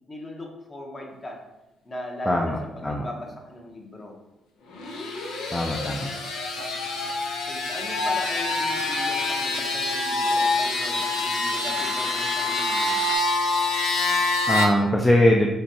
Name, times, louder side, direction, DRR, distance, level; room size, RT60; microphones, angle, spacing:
voice 1, 0.1-1.4 1.8-4.2 7.5-13.0, left 1 dB, 30° left, 1 dB, 0.9 m, -38 dB
voice 2, 2.3-2.6 2.8-3.1 5.5-6.1 14.5-15.5, left 1 dB, 15° left, 1 dB, 0.4 m, -21 dB
sound 1, 4.7-14.7, left 2 dB, 90° left, 0.7 m, -26 dB
sound 2, 6.6-13.2, right 2 dB, 45° right, 0.6 m, -37 dB
6.5 x 2.2 x 2.8 m, 0.99 s
cardioid pair, 90°, 0 cm